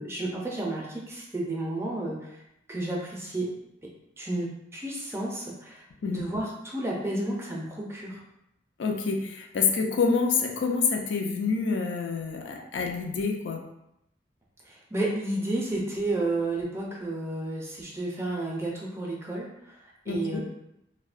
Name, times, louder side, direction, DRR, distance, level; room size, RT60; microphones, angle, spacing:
voice 1, 0.0-2.2 2.7-3.5 4.2-8.2 14.7-19.8 20.1-20.4, right 2 dB, 15° right, -3 dB, 0.4 m, -31 dB
voice 2, 8.8-13.6 20.1-20.4, left 5 dB, 75° left, 2 dB, 0.4 m, -27 dB
2.7 x 2.1 x 2.4 m, 0.83 s
head